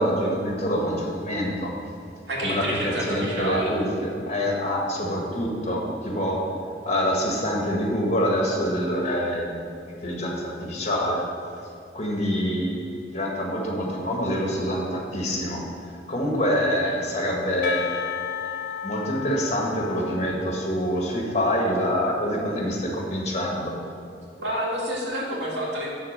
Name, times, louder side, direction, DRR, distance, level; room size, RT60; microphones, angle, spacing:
voice 1, 0.0-1.8 2.4-6.4 6.8-11.2 11.9-15.7 16.1-18.1 18.8-23.8, equal, 40° left, -1 dB, 1.6 m, -26 dB
voice 2, 2.3-3.7 24.4-25.9, right 1 dB, 80° right, -4 dB, 2.2 m, -28 dB
Percussion / Church bell, 17.6-22.4, left 9 dB, 55° left, 0.3 m, -35 dB
11.5 x 4.1 x 6.6 m, 2.5 s
head